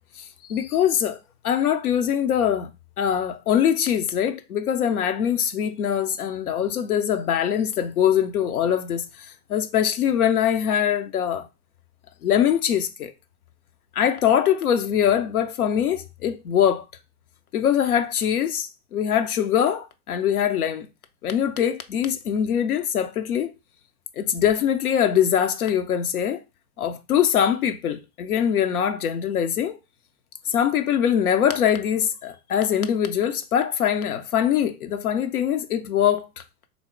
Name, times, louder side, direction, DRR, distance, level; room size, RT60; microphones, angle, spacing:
voice 1, 0.2-1.2 1.4-2.7 3.0-11.5 12.2-13.1 13.9-16.8 17.5-20.9 21.2-23.5 24.2-26.4 26.8-29.8 30.5-36.4, left 9 dB, 65° left, 0.7 m, -23 dB
3.6 x 2.8 x 4.3 m
figure-of-eight pair, 80°, 47 cm